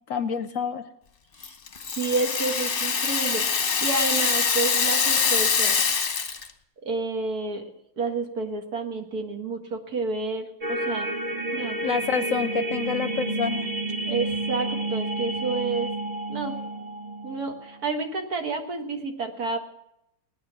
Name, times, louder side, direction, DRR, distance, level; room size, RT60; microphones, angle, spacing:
voice 1, 0.1-0.8 11.8-13.7, left 6 dB, 60° left, 11 dB, 0.9 m, -27 dB
Rattle (instrument), 1.4-6.5, left 5 dB, 40° left, 1.0 m, -24 dB
voice 2, 1.9-5.8 6.8-7.6 8.0-11.1 11.5-11.8 14.0-15.9 16.3-16.6 17.2-19.6, right 3 dB, 65° right, 3 dB, 2.1 m, -30 dB
sound 1, 10.6-17.9, right 2 dB, 30° right, 0.8 m, -30 dB
18.0 x 10.0 x 6.2 m, 0.82 s
omnidirectional pair, 1.8 m